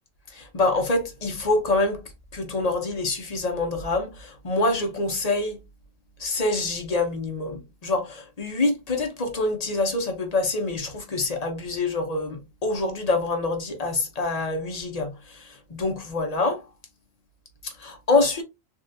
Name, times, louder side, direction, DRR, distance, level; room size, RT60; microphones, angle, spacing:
voice 1, 0.3-2.0 2.3-5.6 6.2-16.7 17.6-18.4, left 2 dB, 40° left, 0.7 m, -26 dB
3.5 x 2.3 x 2.6 m
omnidirectional pair, 1.3 m